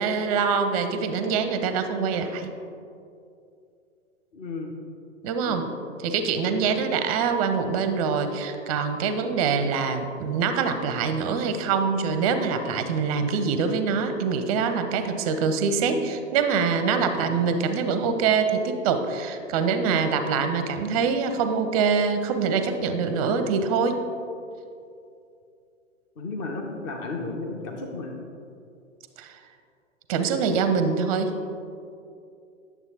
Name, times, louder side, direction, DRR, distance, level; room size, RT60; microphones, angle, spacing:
voice 1, 0.0-2.5 5.2-5.7 6.0-24.0 29.2-29.4 30.1-31.3, right 5 dB, 30° right, 9 dB, 0.5 m, -24 dB
voice 2, 4.3-4.7 5.4-5.7 6.4-6.6 17.0-17.5 19.9-20.4 26.2-28.2, left 3 dB, 20° left, 1 dB, 0.4 m, -34 dB
9.5 x 6.9 x 2.8 m, 2.5 s
figure-of-eight pair, 110°, 38 cm